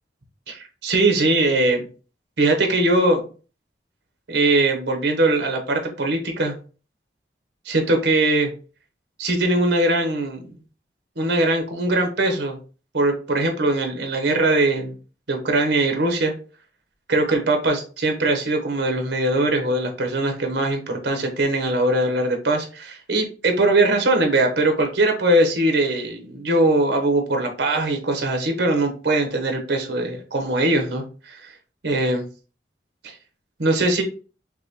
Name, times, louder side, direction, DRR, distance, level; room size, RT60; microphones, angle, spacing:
voice 1, 0.5-1.9 2.4-3.3 4.3-6.5 7.7-8.5 9.2-10.5 11.2-12.6 12.9-14.9 15.3-16.3 17.1-31.5 31.8-32.2 33.0-33.1 33.6-34.0, right 2 dB, 70° right, 4 dB, 1.0 m, -21 dB
5.8 x 2.2 x 3.0 m, 0.37 s
head